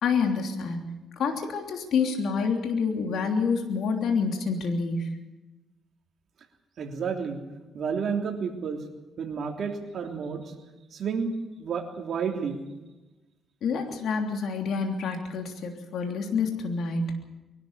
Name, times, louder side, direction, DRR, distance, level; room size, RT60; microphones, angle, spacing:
voice 1, 0.0-5.2 13.6-17.1, left 5 dB, 70° left, 3 dB, 3.1 m, -28 dB
voice 2, 6.8-7.4 7.7-8.8 9.2-10.5 10.9-11.3 11.6-12.6, right 6 dB, 60° right, 3 dB, 3.2 m, -31 dB
23.0 x 12.5 x 9.8 m, 1.1 s
cardioid pair, 90°, 0 cm